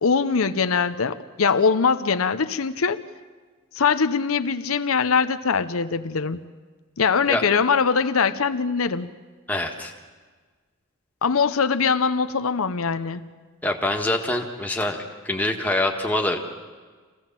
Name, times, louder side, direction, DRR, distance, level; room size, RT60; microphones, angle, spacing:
voice 1, 0.0-3.0 3.7-6.4 7.0-9.1 11.2-13.3, left 5 dB, 90° left, 11 dB, 0.7 m, -22 dB
voice 2, 9.5-9.9 13.6-15.0 15.2-16.4, left 1 dB, 10° left, 1 dB, 1.6 m, -24 dB
25.5 x 16.5 x 7.4 m, 1.4 s
head